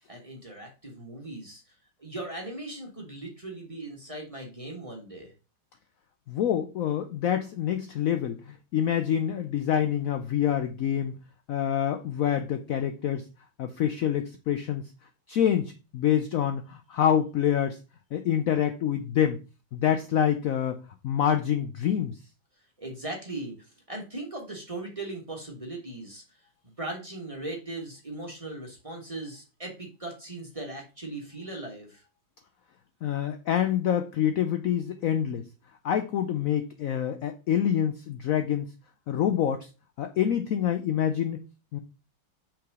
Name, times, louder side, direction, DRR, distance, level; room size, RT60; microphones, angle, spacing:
voice 1, 0.1-1.6 2.0-5.3 22.8-26.2 26.8-32.0, right 2 dB, 20° right, 0 dB, 1.3 m, -38 dB
voice 2, 6.3-11.2 11.5-13.3 13.6-14.9 15.3-17.8 18.1-19.4 19.7-22.2 33.0-35.4 35.8-38.7 39.1-39.7 40.0-41.4 41.7-41.8, left 9 dB, 90° left, 7 dB, 0.7 m, -26 dB
5.9 x 3.7 x 4.7 m, 0.31 s
omnidirectional pair, 2.1 m